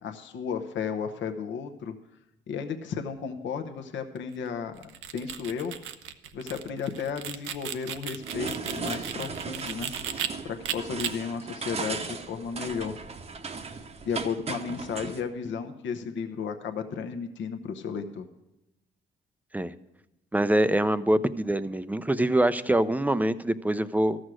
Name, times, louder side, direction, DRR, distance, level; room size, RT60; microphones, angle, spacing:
voice 1, 0.0-1.9 2.5-5.7 6.3-9.9 10.4-13.0 14.0-18.3, left 6 dB, 70° left, 6 dB, 0.9 m, -34 dB
sound 1, 4.8-10.3 10.6-11.1, right 9 dB, 80° right, 0.7 m, -35 dB
sound 2, 8.2-15.2, right 4 dB, 35° right, 0.9 m, -37 dB
voice 2, 20.3-24.2, right 1 dB, 10° right, 13 dB, 0.5 m, -24 dB
13.0 x 6.3 x 6.2 m, 0.93 s
cardioid pair, 90°, 20 cm